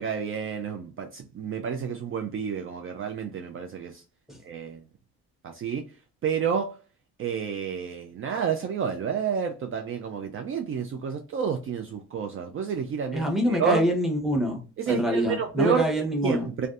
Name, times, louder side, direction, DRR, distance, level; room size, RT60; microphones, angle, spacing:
voice 1, 0.0-4.0 4.4-4.8 5.4-5.9 6.2-6.8 7.2-13.8 14.8-15.9 16.2-16.7, right 7 dB, 45° right, 0.4 m, -30 dB
voice 2, 13.1-16.5, equal, ahead, 0.9 m, -25 dB
2.5 x 2.2 x 2.4 m
cardioid pair, 90°, 30 cm